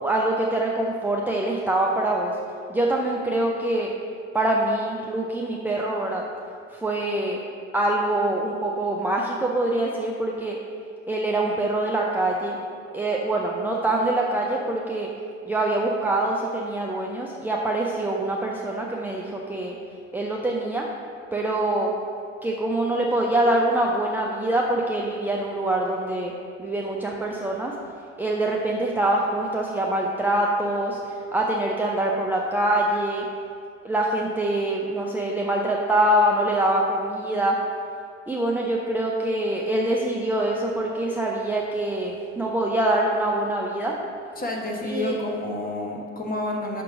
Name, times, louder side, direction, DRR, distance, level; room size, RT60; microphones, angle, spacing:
voice 1, 0.0-2.3 2.7-3.9 4.3-6.2 6.7-7.4 7.7-10.6 11.1-12.6 12.9-15.1 15.4-19.7 20.1-20.9 21.3-21.9 22.4-26.3 26.6-27.7 28.2-31.0 31.3-33.3 33.8-37.6 38.3-44.0 44.9-45.2, right 1 dB, 5° right, -2 dB, 0.6 m, -24 dB
voice 2, 44.4-46.8, left 2 dB, 25° left, 0 dB, 1.4 m, -29 dB
6.2 x 4.5 x 6.0 m, 2.4 s
hypercardioid pair, 60°, 36 cm